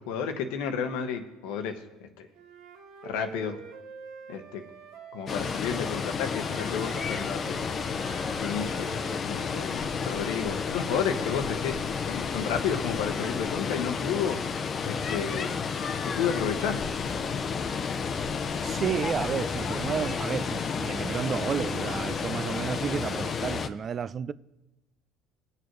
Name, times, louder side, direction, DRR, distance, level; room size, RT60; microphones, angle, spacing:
voice 1, 0.0-1.8 2.2-2.3 3.0-3.6 4.3-4.6 5.1-7.6 8.4-9.0 9.3-14.4 14.8-15.5 16.2-16.8, left 7 dB, 85° left, 1.1 m, -32 dB
Wind instrument woodwind instrument, 2.3-5.7 6.2-10.0, right 6 dB, 75° right, 1.2 m, -46 dB
Water, 5.3-23.7, left 5 dB, 40° left, 0.7 m, -31 dB
voice 2, 18.6-24.3, right 7 dB, 40° right, 0.3 m, -31 dB
20.5 x 6.9 x 3.2 m
supercardioid pair, 105°, 0 cm